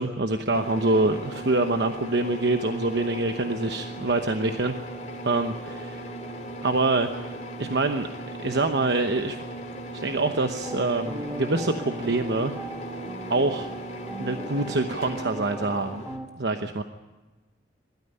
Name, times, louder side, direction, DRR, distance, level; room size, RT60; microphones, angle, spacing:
voice 1, 0.0-4.8 5.2-6.1 6.6-7.2 7.6-8.1 8.4-9.4 9.9-12.5 13.3-13.8 14.2-16.0 16.4-16.8, right 2 dB, 70° right, 6 dB, 1.0 m, -25 dB
sound 1, 0.5-16.2, right 1 dB, 40° left, 3.1 m, -38 dB
sound 2, 10.6-16.3, right 1 dB, 10° right, 1.4 m, -38 dB
21.5 x 13.5 x 9.8 m, 1.2 s
head